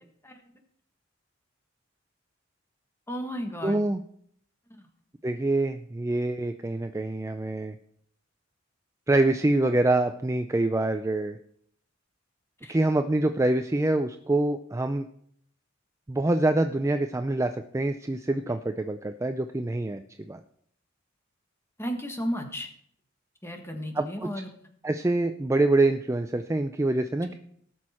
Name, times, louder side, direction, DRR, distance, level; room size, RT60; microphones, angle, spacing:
voice 1, 3.1-3.8 4.7-4.9 12.6-12.8 21.8-22.7 23.4-24.5 27.3-27.4, equal, 15° left, 4 dB, 1.4 m, -34 dB
voice 2, 3.6-4.0 5.2-7.7 9.1-11.4 12.7-15.1 16.1-20.4 24.0-24.3 24.8-27.4, right 2 dB, 15° right, 8 dB, 0.4 m, -25 dB
18.0 x 6.3 x 4.3 m, 0.66 s
head